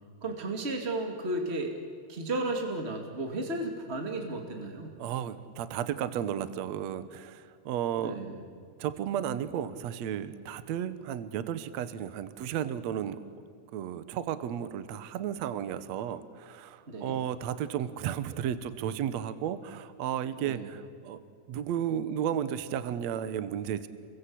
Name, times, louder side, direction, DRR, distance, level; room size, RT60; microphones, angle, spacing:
voice 1, 0.2-1.8 2.1-4.9 8.0-8.4 16.9-17.2 20.4-20.7, right 2 dB, 25° right, 3 dB, 1.5 m, -34 dB
voice 2, 5.0-8.2 8.8-13.2 13.7-21.2 21.5-23.9, right 9 dB, 70° right, 13 dB, 1.7 m, -33 dB
29.0 x 23.0 x 8.6 m, 2.2 s
omnidirectional pair, 4.6 m